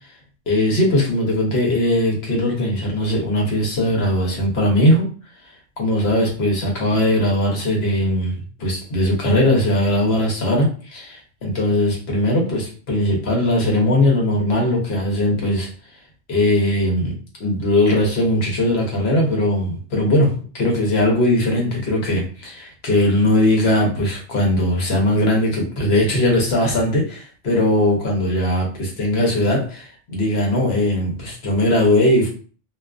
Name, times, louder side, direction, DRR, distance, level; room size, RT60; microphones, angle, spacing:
voice 1, 0.5-5.1 5.8-15.7 16.3-32.3, left 1 dB, 60° left, 0 dB, 1.0 m, -19 dB
2.4 x 2.4 x 2.3 m, 0.39 s
omnidirectional pair, 1.2 m